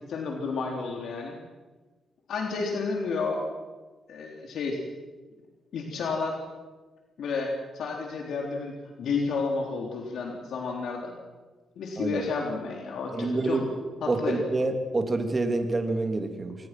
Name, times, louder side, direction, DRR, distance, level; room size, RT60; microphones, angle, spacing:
voice 1, 0.1-1.4 2.3-3.4 4.1-4.8 5.7-6.4 7.2-11.2 11.7-13.6 14.0-14.4, left 4 dB, 75° left, 1 dB, 3.4 m, -31 dB
voice 2, 13.1-13.8 14.1-16.6, right 2 dB, 30° right, 5 dB, 2.8 m, -27 dB
25.5 x 19.5 x 6.0 m, 1.3 s
cardioid pair, 100°, 0 cm